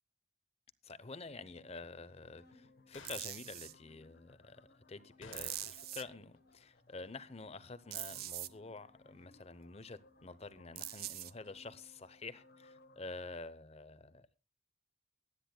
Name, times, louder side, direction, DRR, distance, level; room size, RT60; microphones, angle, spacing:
voice 1, 0.8-14.3, left 3 dB, 30° left, 0.8 m, -49 dB
sound 1, 1.2-13.4, left 3 dB, 50° left, 1.2 m, -64 dB
sound 2, 2.9-3.4 5.2-6.1 6.3-6.4 11.4-11.6, left 4 dB, 85° left, 2.6 m, -56 dB
sound 3, 3.0-3.7 5.3-6.0 7.9-8.5 10.8-11.3, right 14 dB, 50° right, 0.6 m, -43 dB
24.0 x 9.9 x 2.2 m
head